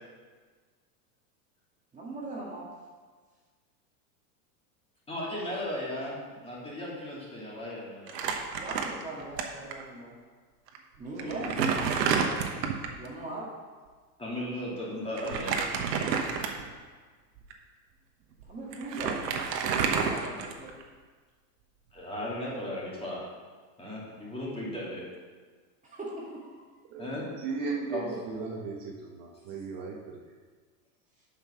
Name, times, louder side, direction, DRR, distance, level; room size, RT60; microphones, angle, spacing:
voice 1, 1.9-2.7 8.6-10.2 11.0-11.9 13.0-13.5 18.5-19.3 19.9-20.8 25.8-26.6, right 2 dB, 15° right, -5 dB, 1.7 m, -39 dB
voice 2, 5.1-8.2 11.2-11.7 14.2-15.5 21.9-23.2 23.8-25.0 27.0-27.3 27.6-28.1, left 1 dB, 10° left, -6 dB, 2.6 m, -36 dB
Crumpling crinkling, 8.1-9.4 9.7-9.8 10.7-10.8 11.2-13.0 15.2-16.8 17.4-17.5 18.4-18.5 18.7-20.8, right 6 dB, 85° right, 1.2 m, -29 dB
voice 3, 26.9-29.9, right 4 dB, 45° right, -1 dB, 1.3 m, -36 dB
7.3 x 5.7 x 5.7 m, 1.5 s
supercardioid pair, 120°, 49 cm